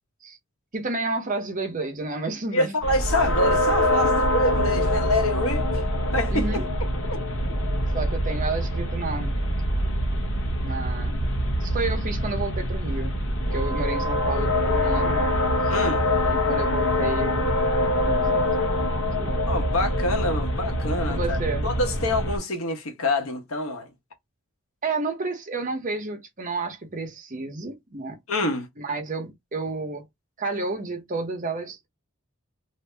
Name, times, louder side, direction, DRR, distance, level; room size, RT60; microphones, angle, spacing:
voice 1, 0.7-2.8 6.3-6.6 7.9-9.3 10.6-11.3 11.6-13.1 13.5-15.3 15.6-15.7 16.2-17.5 18.0-18.5 19.2-19.4 21.1-21.7 24.8-28.2 28.8-30.0 30.4-31.9, right 3 dB, 40° right, 0.9 m, -31 dB
voice 2, 2.5-5.8 6.1-6.6 7.1-7.4 15.7-16.1 19.4-23.9 28.3-28.7, left 1 dB, 85° left, 1.1 m, -26 dB
sound 1, 2.8-22.4, left 1 dB, 60° left, 1.0 m, -24 dB
2.7 x 2.7 x 3.3 m
head